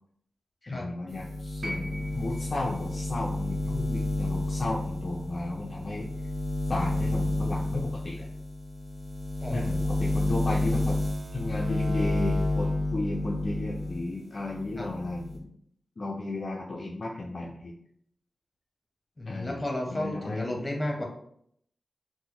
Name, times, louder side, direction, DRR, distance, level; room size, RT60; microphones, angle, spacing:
voice 1, 0.7-6.1 6.7-8.3 9.5-11.0 11.3-15.5 16.0-17.7 19.3-20.6, left 2 dB, 45° left, -1 dB, 0.4 m, -34 dB
sound 1, 1.1-14.0 14.4-15.4, left 2 dB, 35° right, 0.7 m, -30 dB
sound 2, 1.6-5.8 7.0-7.1, equal, 85° right, 0.9 m, -44 dB
voice 2, 9.4-9.7 14.8-14.9 19.2-21.0, left 1 dB, 25° left, 0 dB, 0.8 m, -33 dB
4.1 x 2.0 x 2.9 m, 0.69 s
wide cardioid pair, 100°, 0 cm